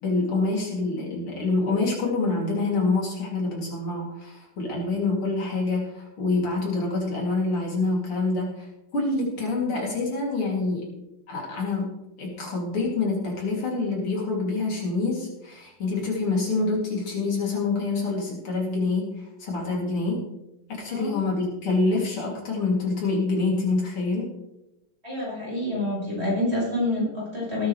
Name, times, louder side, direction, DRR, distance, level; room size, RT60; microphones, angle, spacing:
voice 1, 0.0-8.7 8.9-10.9 11.3-11.9 12.2-20.2 20.7-24.3, left 3 dB, 75° left, -3 dB, 3.7 m, -26 dB
voice 2, 25.0-27.7, left 1 dB, 25° right, -6 dB, 5.9 m, -27 dB
18.5 x 9.2 x 3.3 m, 0.87 s
omnidirectional pair, 2.4 m